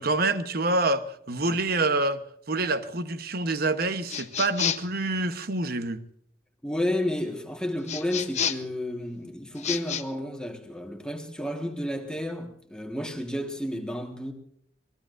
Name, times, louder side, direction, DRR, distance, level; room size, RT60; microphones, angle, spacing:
voice 1, 0.0-2.2 2.5-6.0, right 2 dB, 55° right, 1.1 m, -26 dB
sound 1, 4.1-5.0 7.9-8.7 9.5-10.0, left 8 dB, 40° left, 0.9 m, -30 dB
voice 2, 6.6-14.3, left 1 dB, 5° left, 1.5 m, -31 dB
27.0 x 20.0 x 2.6 m
head